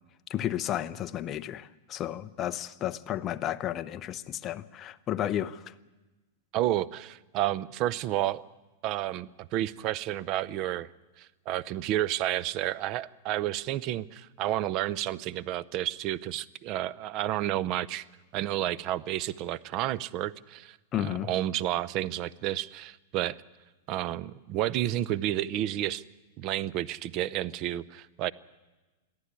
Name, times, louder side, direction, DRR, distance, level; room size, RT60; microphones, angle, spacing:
voice 1, 0.3-5.7 20.9-21.3, left 11 dB, 25° left, 0.7 m, -32 dB
voice 2, 6.5-8.4 8.8-10.9 11.2-18.1 18.3-23.4 23.9-26.0 26.4-28.3, right 13 dB, 35° right, 0.6 m, -31 dB
22.0 x 14.0 x 9.8 m
supercardioid pair, 150°, 0 cm